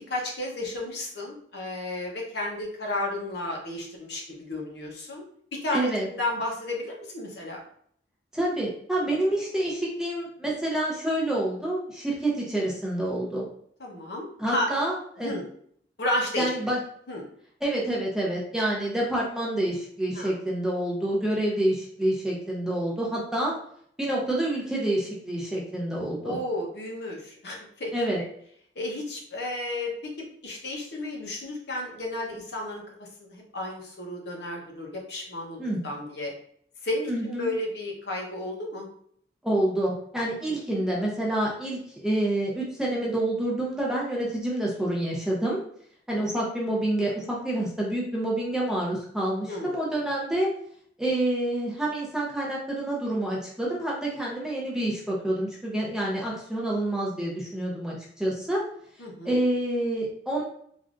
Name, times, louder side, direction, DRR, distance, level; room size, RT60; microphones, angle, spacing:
voice 1, 0.1-5.2 5.5-7.6 13.8-14.7 15.2-15.4 16.0-16.5 17.1-17.2 20.1-20.3 26.2-27.9 28.2-28.3 28.8-36.3 36.8-38.9 40.5-40.6 49.5-49.7 59.0-59.4, left 1 dB, 60° left, -1 dB, 0.8 m, -33 dB
voice 2, 5.7-6.1 8.3-13.5 14.4-15.3 16.4-16.8 17.6-23.5 24.0-26.4 27.9-28.2 35.6-35.8 37.1-37.5 39.4-45.6 46.1-50.5 51.0-58.6 59.2-60.4, right 1 dB, 5° right, -5 dB, 0.6 m, -28 dB
3.4 x 2.5 x 2.5 m, 0.63 s
head